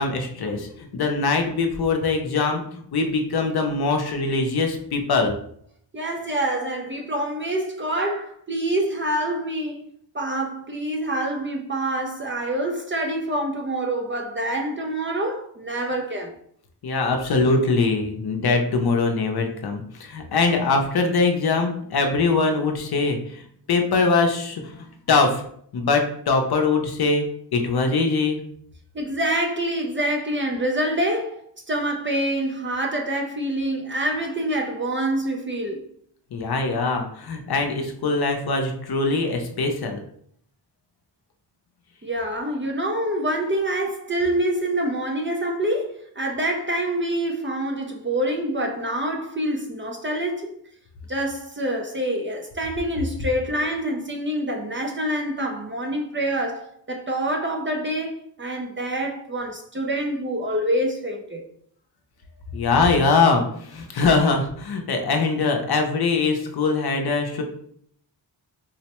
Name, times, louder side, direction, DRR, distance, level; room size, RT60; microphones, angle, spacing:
voice 1, 0.0-5.3 16.8-23.4 23.7-25.4 25.7-28.4 36.3-40.0 62.5-67.4, left 4 dB, 60° left, 0.6 m, -22 dB
voice 2, 5.9-9.8 10.1-16.4 28.9-31.4 31.7-35.8 42.0-50.5 51.1-61.4, right 1 dB, 30° right, 0.4 m, -26 dB
4.0 x 2.1 x 2.9 m
wide cardioid pair, 105°, 43 cm